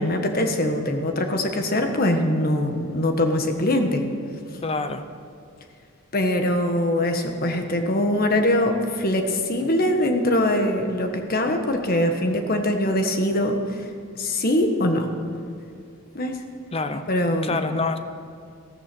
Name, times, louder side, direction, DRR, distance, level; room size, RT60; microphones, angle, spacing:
voice 1, 0.0-4.1 6.1-13.8 14.2-15.1 16.1-16.4 17.1-17.6, left 1 dB, 40° left, 5 dB, 1.4 m, -22 dB
voice 2, 4.6-5.1 16.7-17.0 17.4-18.0, left 3 dB, 25° left, 10 dB, 0.7 m, -26 dB
15.0 x 14.0 x 6.2 m, 2.3 s
head